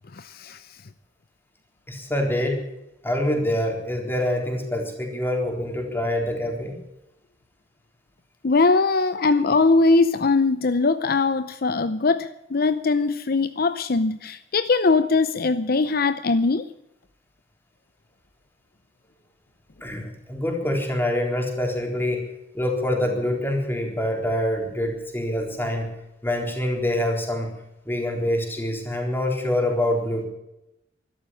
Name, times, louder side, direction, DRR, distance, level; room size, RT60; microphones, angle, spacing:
voice 1, 0.1-0.6 8.4-16.6, left 3 dB, 55° left, 12 dB, 0.7 m, -21 dB
voice 2, 1.9-2.6 3.0-6.7 19.8-22.2 22.5-25.9 26.2-27.5 27.9-30.3, left 1 dB, 10° left, 2 dB, 3.9 m, -25 dB
13.5 x 12.0 x 8.8 m, 0.89 s
head